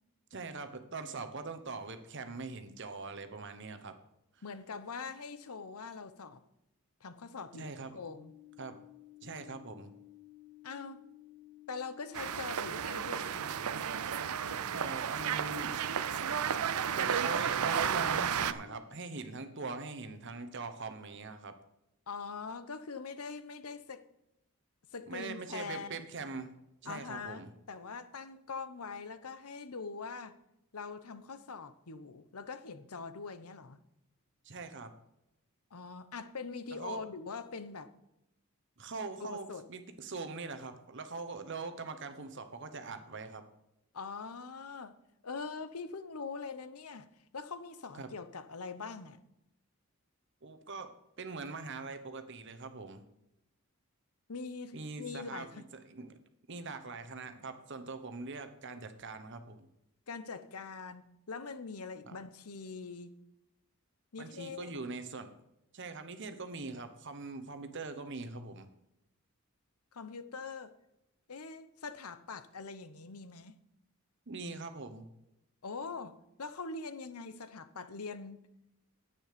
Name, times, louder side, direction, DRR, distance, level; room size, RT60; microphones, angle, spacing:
voice 1, 0.3-3.9 7.5-8.0 8.6-8.8 9.2-9.9 14.7-15.7 16.9-21.5 25.1-26.5 26.8-27.5 34.4-34.9 36.8-37.0 38.8-43.4 48.0-48.1 50.4-53.0 54.7-56.2 56.5-59.7 62.0-62.2 64.2-65.3 65.7-68.7 74.3-75.1, right 4 dB, 55° right, 1.1 m, -42 dB
voice 2, 4.4-6.4 7.0-8.3 10.6-11.0 11.7-13.5 22.1-24.1 24.9-26.1 26.9-30.4 30.7-33.8 35.7-37.9 39.2-39.6 43.9-44.9 45.2-47.1 47.3-49.2 54.3-55.6 60.1-63.1 64.1-64.8 69.9-70.7 71.3-73.5 75.6-78.4, left 4 dB, 85° left, 0.9 m, -43 dB
sound 1, 8.0-18.8, left 16 dB, 20° left, 2.2 m, -55 dB
sound 2, 12.1-18.5, right 8 dB, 80° right, 0.6 m, -33 dB
9.8 x 8.6 x 5.1 m
head